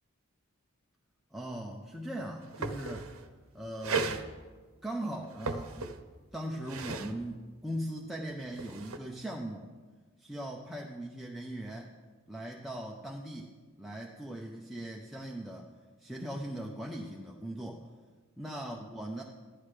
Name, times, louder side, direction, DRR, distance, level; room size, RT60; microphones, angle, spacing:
voice 1, 1.3-3.1 3.5-4.2 4.8-5.9 6.3-9.7 10.2-11.9 12.3-15.7 16.0-17.9 18.4-19.2, right 1 dB, ahead, -2 dB, 0.6 m, -39 dB
sound 1, 2.0-2.1 2.3-3.3 3.8-4.2 5.2-6.2 6.5-7.1 8.3-9.0, right 4 dB, 75° right, 0.8 m, -36 dB
15.0 x 11.5 x 3.2 m, 1.4 s
head